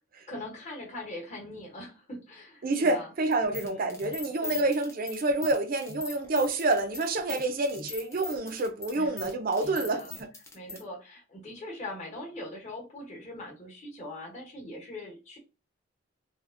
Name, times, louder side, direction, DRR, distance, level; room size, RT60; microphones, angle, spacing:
voice 1, 0.3-3.1 3.4-3.9 4.4-4.7 8.9-9.2 9.6-10.2 10.5-15.4, left 1 dB, 35° left, 1.0 m, -42 dB
voice 2, 2.6-10.0 10.7-10.8, right 2 dB, 45° right, 0.4 m, -28 dB
sound 1, 3.3-10.8, left 3 dB, 15° left, 0.5 m, -41 dB
3.4 x 2.4 x 2.4 m
head